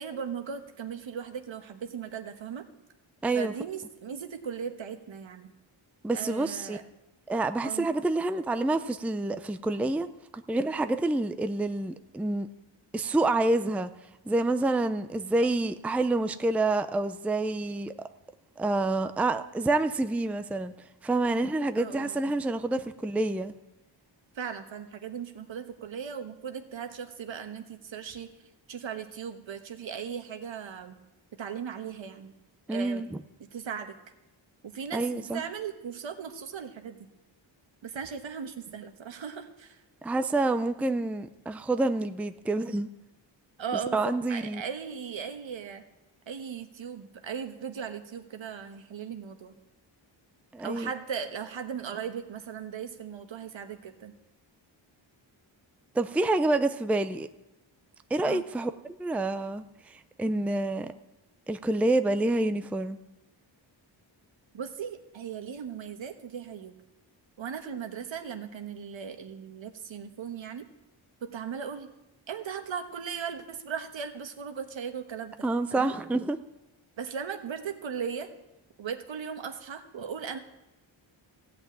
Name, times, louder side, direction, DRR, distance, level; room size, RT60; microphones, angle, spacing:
voice 1, 0.0-2.6 3.3-5.5 6.1-6.8 7.6-7.9 21.8-22.3 24.3-28.3 28.7-30.9 31.4-32.3 32.7-33.1 33.5-33.9 34.6-37.0 37.8-39.8 43.6-45.8 46.3-49.5 50.6-54.1 58.2-58.4 64.5-66.7 67.4-70.7 71.2-71.9 72.3-75.3 75.7-75.9 77.0-78.3 78.8-80.4, right 7 dB, 70° right, 7 dB, 1.3 m, -37 dB
voice 2, 3.2-3.5 6.0-6.8 7.3-10.1 10.3-12.5 12.9-13.9 14.3-17.9 18.6-20.7 21.0-23.5 32.7-33.2 34.9-35.4 40.0-42.9 43.9-44.6 50.5-50.9 55.9-57.3 58.1-58.7 59.0-60.9 61.5-63.0 75.4-76.4, right 2 dB, 5° right, 10 dB, 0.4 m, -28 dB
15.5 x 5.9 x 8.6 m, 0.94 s
wide cardioid pair, 95°, 47 cm